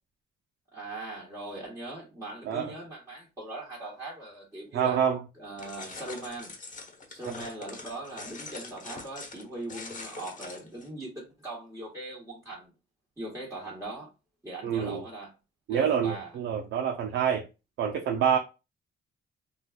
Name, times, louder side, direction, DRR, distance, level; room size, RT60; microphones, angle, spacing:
voice 1, 0.7-5.0 5.4-6.5 7.1-12.7 13.2-14.1 14.4-15.3 15.7-16.3, right 2 dB, 15° right, 1.3 m, -40 dB
voice 2, 4.7-5.2 14.6-15.0 15.7-17.4 17.8-18.4, right 8 dB, 75° right, 0.6 m, -27 dB
sound 1, 5.6-10.9, left 3 dB, 40° left, 1.0 m, -43 dB
3.9 x 2.3 x 2.3 m
cardioid pair, 90°, 20 cm